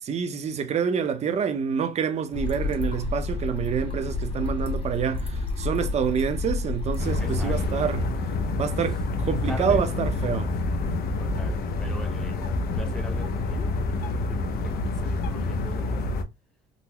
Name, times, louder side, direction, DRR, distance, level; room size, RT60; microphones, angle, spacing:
voice 1, 0.0-8.1 8.6-10.5, right 7 dB, 40° right, 0.6 m, -27 dB
sound 1, 2.3-7.7, left 2 dB, 30° left, 1.0 m, -30 dB
sound 2, 7.0-16.2, left 2 dB, 65° left, 0.6 m, -27 dB
voice 2, 7.2-7.8 9.5-10.1 11.2-16.2, equal, 5° left, 0.9 m, -42 dB
3.8 x 2.0 x 2.8 m
cardioid pair, 110°, 17 cm